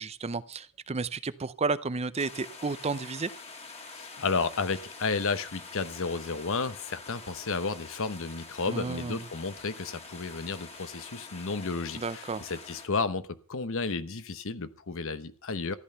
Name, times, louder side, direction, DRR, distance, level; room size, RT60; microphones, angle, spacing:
voice 1, 0.0-3.3 8.7-9.2 11.9-12.5, right 4 dB, 30° right, 0.6 m, -32 dB
sound 1, 2.2-12.9, left 3 dB, 30° left, 1.9 m, -46 dB
voice 2, 3.9-15.7, left 4 dB, 65° left, 0.9 m, -32 dB
14.5 x 11.0 x 5.6 m
head